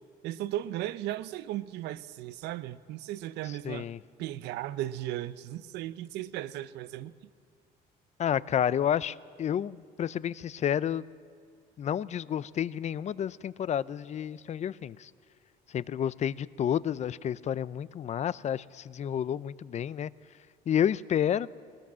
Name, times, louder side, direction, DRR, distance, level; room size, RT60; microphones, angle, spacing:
voice 1, 0.2-3.9 4.2-7.1, right 13 dB, 85° right, 0.7 m, -36 dB
voice 2, 3.6-4.0 8.2-11.0 11.8-15.1 15.7-20.1 20.7-21.5, left 9 dB, 40° left, 0.5 m, -30 dB
21.0 x 19.5 x 7.5 m
cardioid pair, 110°, 17 cm